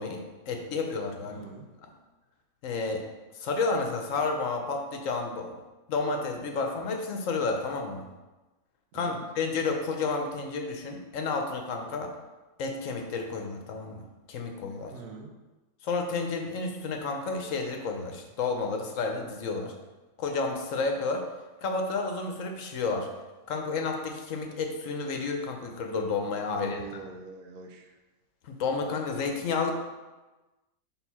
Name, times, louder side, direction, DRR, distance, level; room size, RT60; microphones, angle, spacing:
voice 1, 0.0-1.4 1.8-1.9 2.6-3.0 3.3-5.5 5.9-8.0 8.9-12.1 12.6-14.9 15.8-19.7 20.2-21.2 21.6-23.1 23.5-26.9 28.4-29.8, left 4 dB, 75° left, 3 dB, 1.1 m, -31 dB
voice 2, 1.3-1.7 8.9-9.2 14.9-15.3 26.5-28.0, right 4 dB, 85° right, 4 dB, 1.1 m, -43 dB
4.6 x 3.7 x 5.5 m, 1.1 s
omnidirectional pair, 1.4 m